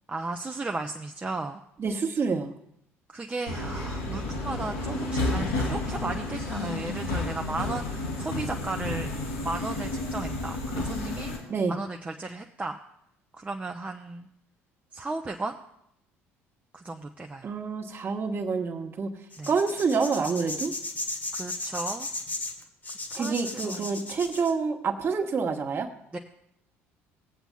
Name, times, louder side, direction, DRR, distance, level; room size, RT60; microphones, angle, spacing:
voice 1, 0.1-1.6 3.1-9.1 9.4-11.3 11.7-12.8 13.3-14.3 14.9-15.6 16.7-17.5 19.4-19.5 21.3-22.1 23.1-23.9 26.1-26.2, right 3 dB, 15° right, 3 dB, 0.5 m, -35 dB
voice 2, 1.8-2.5 11.5-11.8 17.4-19.1 19.5-20.7 23.1-25.9, right 5 dB, 35° right, 3 dB, 1.2 m, -27 dB
Subway metro underground, 3.5-11.4, left 2 dB, 75° left, 2.4 m, -31 dB
sound 1, 19.3-24.5, left 2 dB, 25° left, 1.2 m, -35 dB
21.5 x 8.0 x 2.3 m, 0.75 s
figure-of-eight pair, 55°, 7 cm